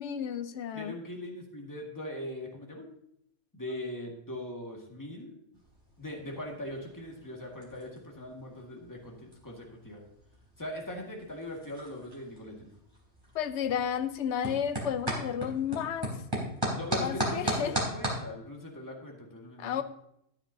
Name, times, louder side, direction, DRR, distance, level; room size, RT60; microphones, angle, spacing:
voice 1, 0.0-1.0 13.3-16.2 17.0-17.7 19.6-19.8, left 8 dB, 75° left, 10 dB, 1.0 m, -32 dB
voice 2, 0.7-2.9 3.5-5.3 6.0-10.0 10.6-12.7 16.7-19.8, left 1 dB, 15° left, 0 dB, 1.9 m, -40 dB
sound 1, 5.5-18.2, right 1 dB, 20° right, 3.5 m, -38 dB
13.0 x 9.9 x 2.7 m, 0.75 s
omnidirectional pair, 1.2 m